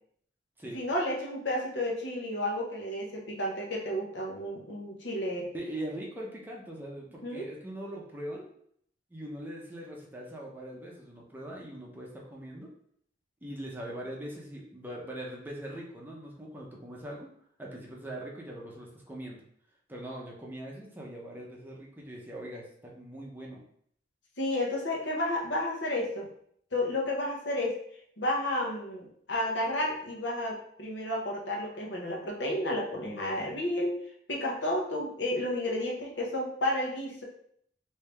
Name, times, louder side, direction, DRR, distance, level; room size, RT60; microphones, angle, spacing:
voice 1, 0.7-5.5 7.2-7.5 24.4-26.3 26.7-27.8 28.2-33.9 34.3-37.2, left 1 dB, 70° left, -1 dB, 0.9 m, -31 dB
voice 2, 5.5-8.5 9.1-12.7 13.4-17.3 17.6-19.4 19.9-23.6, right 1 dB, 10° right, -2 dB, 0.7 m, -41 dB
3.3 x 2.7 x 3.3 m, 0.65 s
head